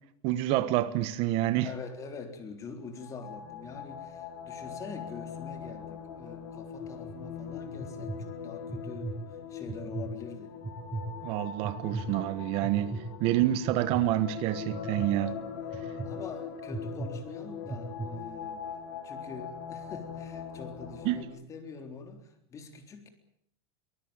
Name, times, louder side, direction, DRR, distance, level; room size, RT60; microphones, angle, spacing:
voice 1, 0.2-1.7 11.2-15.4 15.9-16.0 21.0-21.2, right 14 dB, 45° right, 1.2 m, -28 dB
voice 2, 1.6-9.2 9.5-10.6 15.2-15.5 16.0-18.7 19.0-23.1, left 4 dB, 25° left, 3.8 m, -45 dB
sound 1, 2.8-21.2, left 7 dB, 75° left, 4.4 m, -41 dB
sound 2, 6.8-7.2 7.7-8.2 8.7-9.1 9.6-10.1 10.6-11.1 11.6-12.1 12.6-13.0 13.7-14.0 14.7-15.1 15.7-16.1 16.7-17.1 17.6-18.1, right 4 dB, 10° right, 5.5 m, -36 dB
23.0 x 20.5 x 8.9 m
supercardioid pair, 155°, 14 cm